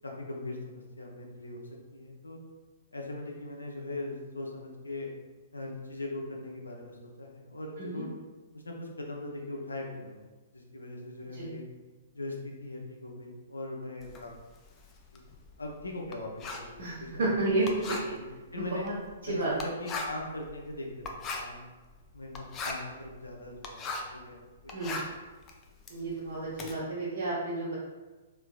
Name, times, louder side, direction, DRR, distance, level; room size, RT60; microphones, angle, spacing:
voice 1, 0.0-2.4 2.9-5.1 5.5-8.1 8.5-11.7 12.1-14.3 15.1-15.2 15.6-17.5 18.1-18.9 19.3-21.6 22.1-24.9, left 2 dB, 75° left, 0 dB, 0.6 m, -40 dB
Writing, 14.0-24.2 24.6-26.7, left 3 dB, 25° left, 0.4 m, -40 dB
voice 2, 16.8-18.0 18.5-18.9 19.2-19.5 24.7-25.0 25.9-27.7, right 2 dB, 55° right, -9 dB, 0.8 m, -31 dB
3.7 x 3.2 x 2.3 m, 1.2 s
figure-of-eight pair, 115°, 0 cm